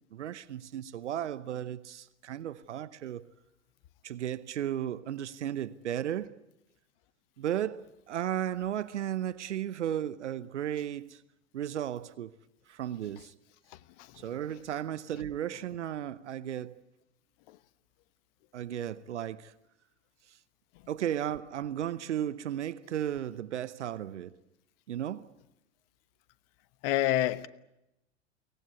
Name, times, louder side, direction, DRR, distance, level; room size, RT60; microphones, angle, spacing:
voice 1, 0.1-3.3 4.0-6.3 7.4-11.2 11.5-12.3 12.7-13.3 14.2-16.8 18.5-19.5 20.9-24.4 24.9-25.3, right 10 dB, 75° right, 0.9 m, -35 dB
voice 2, 13.7-14.3 17.5-17.6 20.7-20.9 26.8-27.5, left 14 dB, 55° left, 1.2 m, -30 dB
23.5 x 18.5 x 9.6 m
hypercardioid pair, 90°, 35 cm